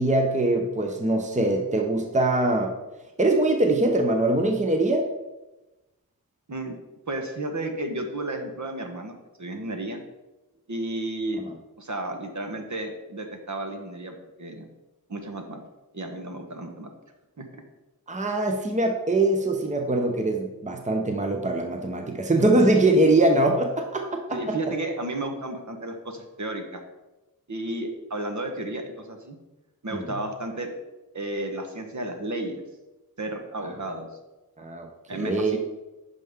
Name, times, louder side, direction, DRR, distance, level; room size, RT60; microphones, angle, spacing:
voice 1, 0.0-2.8 3.2-5.1 18.1-24.6 29.9-30.1 34.6-35.6, right 2 dB, 20° right, 4 dB, 0.8 m, -23 dB
voice 2, 7.1-9.1 9.4-10.0 10.7-11.4 11.8-14.7 15.1-15.6 15.9-16.9 17.4-17.6 22.7-22.8 24.3-26.8 27.5-29.4 29.8-30.7 31.1-32.6 33.2-34.1 35.1-35.6, right 1 dB, 50° right, 4 dB, 1.2 m, -32 dB
9.1 x 5.6 x 3.6 m, 1.0 s
wide cardioid pair, 65°, 36 cm